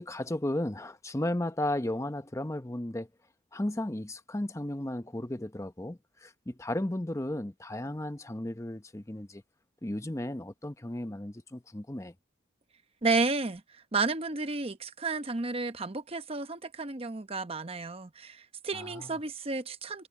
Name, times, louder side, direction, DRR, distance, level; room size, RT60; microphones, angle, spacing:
voice 1, 0.0-3.1 3.5-9.4 9.8-12.1 18.7-19.1, left 1 dB, 15° left, 0.8 m, -34 dB
voice 2, 13.0-13.6 13.9-20.1, right 3 dB, 30° right, 0.9 m, -32 dB
head